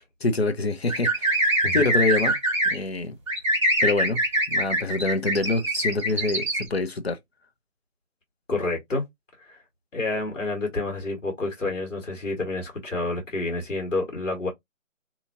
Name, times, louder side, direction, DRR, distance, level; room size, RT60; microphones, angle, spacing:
voice 1, 0.2-1.5 1.7-2.4 2.6-3.1 3.8-4.2 4.5-7.2, left 3 dB, 50° left, 0.7 m, -25 dB
sound 1, 0.9-2.8 3.3-6.6, right 1 dB, 25° right, 1.2 m, -23 dB
voice 2, 8.5-9.0 9.4-9.6 9.9-14.5, left 2 dB, 70° left, 1.6 m, -29 dB
2.8 x 2.6 x 2.5 m
figure-of-eight pair, 165°, 40 cm